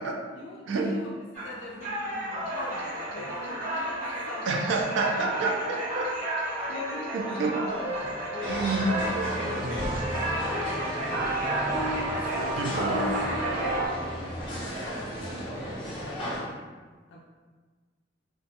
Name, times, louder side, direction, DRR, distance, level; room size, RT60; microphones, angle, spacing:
voice 1, 0.3-5.1 6.7-9.0 9.6-11.5 12.1-16.7 17.1-17.2, left 2 dB, 70° left, -3 dB, 0.4 m, -43 dB
sound 1, 1.3-13.9, right 1 dB, 35° right, 1.1 m, -32 dB
voice 2, 4.5-6.1 7.1-7.6 8.5-9.9 10.2-10.5 12.6-13.2, right 3 dB, 80° right, 1 dB, 0.3 m, -29 dB
sound 2, 7.7-13.9, right 2 dB, 5° right, 0.6 m, -36 dB
sound 3, 8.4-16.4, equal, 25° left, 0.8 m, -35 dB
2.3 x 2.1 x 2.7 m, 1.4 s
head